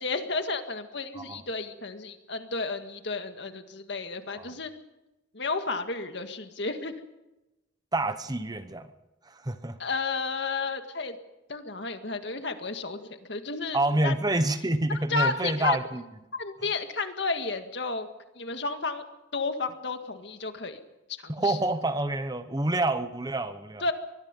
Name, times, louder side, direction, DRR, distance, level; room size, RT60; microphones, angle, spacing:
voice 1, 0.0-4.7 5.3-6.9 9.8-11.2 11.5-14.1 15.1-15.8 16.3-18.1 18.4-19.0 19.3-20.8 21.2-21.6 23.8-23.9, left 4 dB, 65° left, 7 dB, 1.9 m, -32 dB
voice 2, 7.9-8.9 9.4-9.7 13.7-16.0 21.3-23.8, right 2 dB, 20° right, 10 dB, 1.0 m, -27 dB
25.0 x 21.0 x 5.4 m, 0.99 s
head